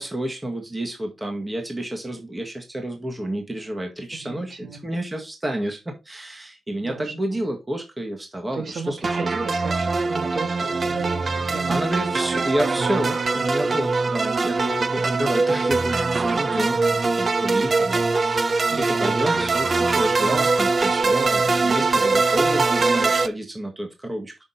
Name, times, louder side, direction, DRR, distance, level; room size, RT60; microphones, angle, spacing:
voice 1, 0.0-9.3 11.7-16.8 17.1-24.4, right 1 dB, 15° right, 1.7 m, -30 dB
voice 2, 4.1-4.8 6.8-7.4 8.5-12.2 15.2-15.6 18.7-19.2 21.8-21.9, right 4 dB, 65° right, 2.6 m, -36 dB
sound 1, 9.0-23.3, right 3 dB, 45° right, 0.7 m, -22 dB
6.1 x 5.9 x 4.1 m
wide cardioid pair, 100°, 0 cm